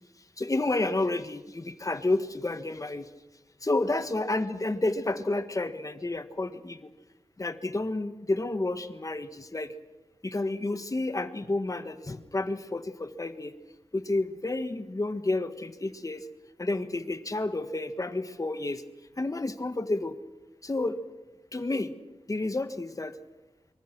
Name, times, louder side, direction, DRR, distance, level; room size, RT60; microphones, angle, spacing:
voice 1, 0.4-3.1 3.6-6.9 7.4-9.7 10.2-13.5 13.9-16.3 16.6-18.8 19.2-20.2 20.6-21.0 21.5-21.9 22.3-23.1, left 2 dB, 30° left, 10 dB, 1.6 m, -30 dB
25.0 x 24.5 x 6.2 m, 1.1 s
wide cardioid pair, 105°, 11 cm